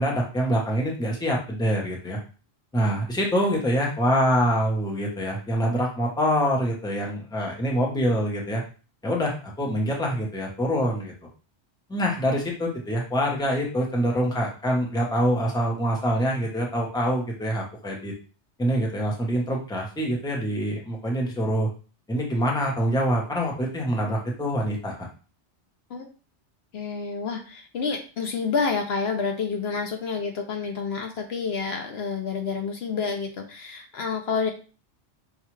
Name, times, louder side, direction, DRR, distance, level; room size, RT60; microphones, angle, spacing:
voice 1, 0.0-2.2 2.7-8.6 9.0-11.1 11.9-18.1 18.6-21.7 22.1-25.1, equal, 5° left, -1 dB, 0.7 m, -25 dB
voice 2, 26.7-34.5, left 5 dB, 65° left, 4 dB, 0.8 m, -29 dB
5.4 x 2.3 x 3.1 m, 0.36 s
omnidirectional pair, 1.2 m